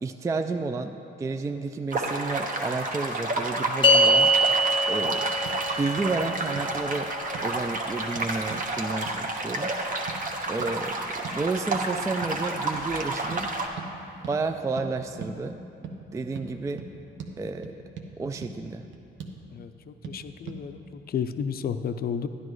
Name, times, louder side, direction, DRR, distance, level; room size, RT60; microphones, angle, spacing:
voice 1, 0.0-4.5 4.9-5.3 5.8-7.1 7.4-9.7 10.5-13.5 14.3-15.6 16.1-16.8 17.4-17.8 18.2-18.8, right 3 dB, 15° right, 7 dB, 0.3 m, -31 dB
sound 1, 1.9-13.7, right 2 dB, 40° right, 1.1 m, -30 dB
sound 2, 3.8-10.4, equal, 25° left, 0.8 m, -26 dB
sound 3, 5.0-5.2 5.5-5.6 6.0-6.1 6.6-6.8 7.3-7.5 8.2-8.7 9.1-9.2 10.1-10.2 10.6-10.7 11.2-11.4 11.7-11.9 12.2-12.4 12.7-12.9 13.3-13.4 13.8-13.9 14.2-14.4 14.8-14.9 15.2-15.4 15.8-16.0 16.4-16.5 16.8-16.9 17.2-17.3 17.6-18.1 18.4-18.5 18.9-19.4 20.0-20.2 20.5-20.6, right 5 dB, 70° right, 0.9 m, -39 dB
voice 2, 19.5-22.3, left 7 dB, 50° left, 10 dB, 0.5 m, -32 dB
11.0 x 10.5 x 3.1 m, 2.8 s
cardioid pair, 90°, 20 cm